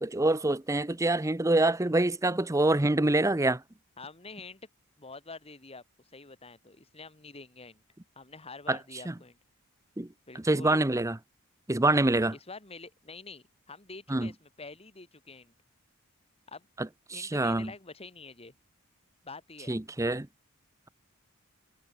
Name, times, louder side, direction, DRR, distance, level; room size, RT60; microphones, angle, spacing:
voice 1, 0.0-3.6 8.7-8.8 9.1-9.2 10.0-10.1 10.4-11.2 11.7-12.3 14.1-14.3 16.8-17.7 19.7-20.3, right 2 dB, 15° right, 0.7 m, -26 dB
voice 2, 4.0-4.7 5.0-7.8 8.2-9.4 10.3-10.8 12.3-15.5 16.5-16.7 17.1-18.5 19.2-19.7, left 3 dB, 25° left, 2.4 m, -47 dB
head